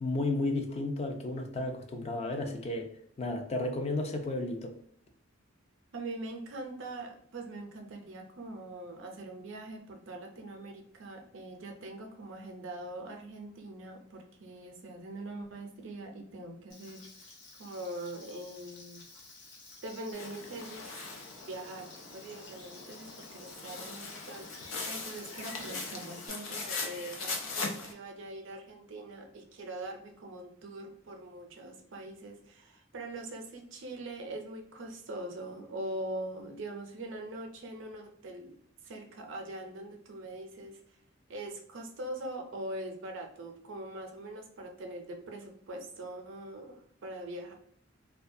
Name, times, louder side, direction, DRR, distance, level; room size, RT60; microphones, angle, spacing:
voice 1, 0.0-2.9 3.2-4.7, left 2 dB, 30° left, 4 dB, 0.4 m, -33 dB
voice 2, 5.9-17.0 17.6-19.0 19.8-21.1 21.5-21.9 22.1-38.6 38.8-40.8 41.3-47.5, right 1 dB, 70° right, 3 dB, 0.5 m, -42 dB
Frying (food), 16.7-26.3, left 3 dB, 65° left, 0.8 m, -53 dB
sound 1, 20.1-27.9, left 4 dB, 90° left, 0.5 m, -40 dB
2.3 x 2.2 x 2.6 m, 0.64 s
head